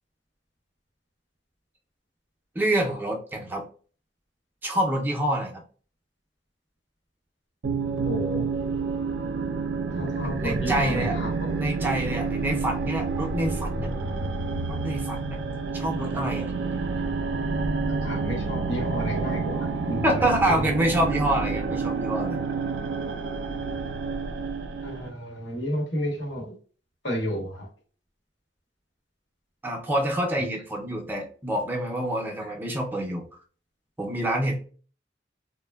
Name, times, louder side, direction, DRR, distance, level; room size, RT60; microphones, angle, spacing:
voice 1, 2.6-3.7 4.6-5.6 10.4-11.2 11.5-13.9 14.7-15.4 15.7-16.5 20.0-22.4 29.6-33.3 34.0-34.6, right 1 dB, 10° right, 1 dB, 0.4 m, -27 dB
sound 1, 7.6-25.1, right 4 dB, 80° right, 0.4 m, -29 dB
voice 2, 8.1-8.5 9.9-11.6 16.9-17.0 17.9-20.0 20.4-20.6 24.8-26.5 27.0-27.6, equal, 85° left, 0 dB, 1.0 m, -31 dB
3.2 x 2.1 x 2.2 m, 0.40 s
head